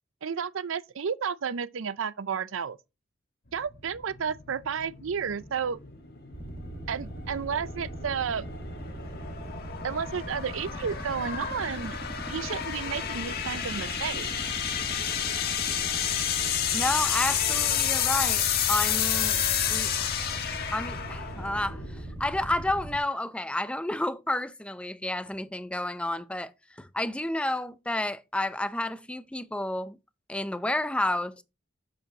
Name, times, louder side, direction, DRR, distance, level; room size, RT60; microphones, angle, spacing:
voice 1, 0.2-2.8 3.5-5.8 6.9-8.5 9.8-12.0 12.3-14.3, right 6 dB, 75° right, 0.5 m, -32 dB
sound 1, 3.5-22.6, left 9 dB, 50° left, 1.4 m, -31 dB
sound 2, 6.3-23.0, right 1 dB, 30° right, 1.5 m, -40 dB
voice 2, 16.7-19.4 19.7-20.3 20.7-26.5 26.8-30.0 30.3-31.4, left 1 dB, 5° left, 0.5 m, -31 dB
8.2 x 7.0 x 2.8 m
head